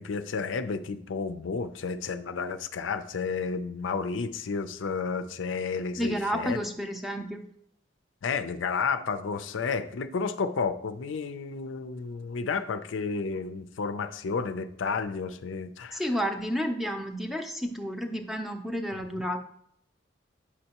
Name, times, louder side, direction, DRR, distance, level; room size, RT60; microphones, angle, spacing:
voice 1, 0.0-6.6 8.2-16.0 19.0-19.1, left 5 dB, 90° left, 10 dB, 0.5 m, -31 dB
voice 2, 6.0-7.4 15.9-19.4, equal, ahead, 4 dB, 0.5 m, -31 dB
8.5 x 5.4 x 2.9 m, 0.70 s
head